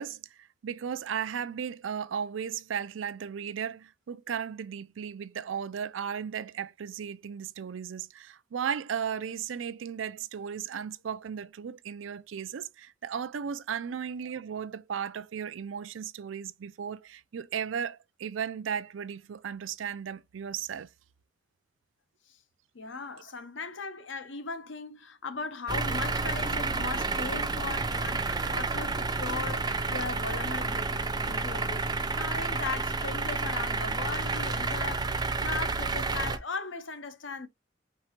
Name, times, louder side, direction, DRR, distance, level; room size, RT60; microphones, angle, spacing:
voice 1, 0.0-20.9, right 7 dB, 85° right, 0.4 m, -35 dB
voice 2, 22.7-31.9 32.1-37.5, left 4 dB, 80° left, 0.9 m, -38 dB
sound 1, 25.7-36.4, right 3 dB, 20° right, 0.5 m, -30 dB
4.6 x 3.7 x 2.9 m
head